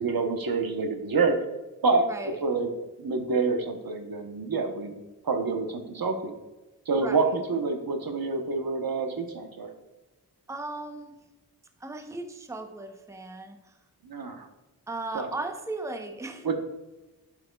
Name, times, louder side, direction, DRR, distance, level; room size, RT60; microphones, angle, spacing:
voice 1, 0.0-1.4 1.8-2.7 3.0-4.9 5.2-6.3 6.9-9.7 14.0-14.5 15.1-15.3 16.4-16.5, right 4 dB, 65° right, 5 dB, 1.0 m, -27 dB
voice 2, 2.0-2.4 7.0-7.2 10.5-11.1 11.8-13.6 14.9-16.5, right 2 dB, 10° right, 5 dB, 0.8 m, -36 dB
7.6 x 5.8 x 2.3 m, 1.1 s
cardioid pair, 45°, 39 cm